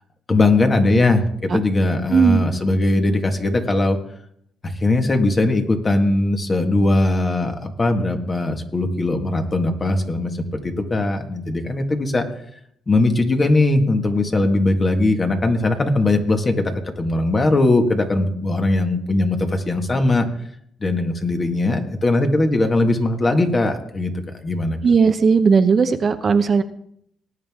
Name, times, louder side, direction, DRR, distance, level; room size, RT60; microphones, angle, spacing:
voice 1, 0.3-4.0 4.8-12.2 12.9-20.2 20.8-24.1 24.4-24.8, left 2 dB, 30° left, 4 dB, 1.8 m, -19 dB
voice 2, 2.1-2.4 24.8-26.6, right 5 dB, 45° right, 9 dB, 0.8 m, -16 dB
19.0 x 9.1 x 3.7 m, 0.71 s
cardioid pair, 90°, 0 cm